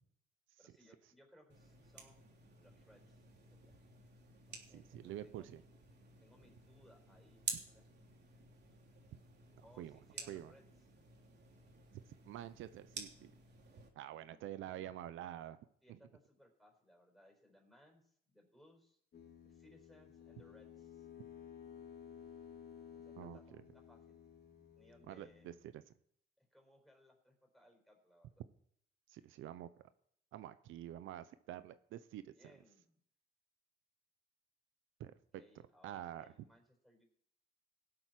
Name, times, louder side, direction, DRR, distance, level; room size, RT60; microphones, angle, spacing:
voice 1, 0.6-2.2 2.6-3.8 4.5-5.6 6.2-7.9 9.6-10.6 14.1-14.9 15.8-19.0 19.4-21.1 22.9-24.2 24.7-25.5 26.4-28.4 32.3-33.0 35.4-37.0, equal, ahead, 1 dB, 5.1 m, -66 dB
sound 1, 1.5-13.9, right 5 dB, 60° right, 3.2 m, -51 dB
voice 2, 4.7-5.6 9.6-10.0 10.3-10.5 12.2-13.3 14.0-15.6 15.9-16.0 23.2-23.6 25.1-25.8 29.1-29.7 30.3-32.3 35.0-35.1 35.8-36.3, right 12 dB, 85° right, 13 dB, 0.8 m, -47 dB
sound 2, 19.1-25.7, left 8 dB, 55° left, 4.0 m, -55 dB
18.5 x 7.9 x 6.0 m, 0.66 s
cardioid pair, 90°, 20 cm